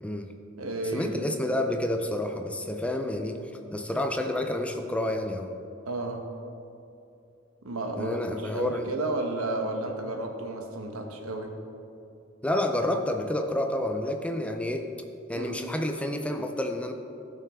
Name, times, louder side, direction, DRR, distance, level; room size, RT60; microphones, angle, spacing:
voice 1, 0.0-0.3 0.9-3.4 3.7-5.5 8.0-8.9 12.4-14.9 15.3-16.9, left 1 dB, 5° left, 4 dB, 0.5 m, -29 dB
voice 2, 0.6-1.3 5.8-6.3 7.6-11.6 15.4-15.6, right 2 dB, 90° right, 3 dB, 1.1 m, -32 dB
16.0 x 5.6 x 3.6 m, 2.6 s
head